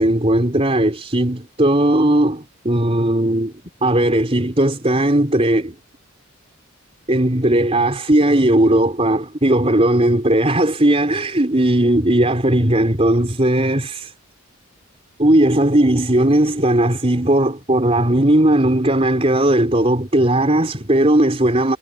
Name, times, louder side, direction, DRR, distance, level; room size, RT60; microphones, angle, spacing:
voice 1, 0.0-5.8 7.1-14.1 15.2-21.8, right 1 dB, 25° right, 4.2 m, -17 dB
head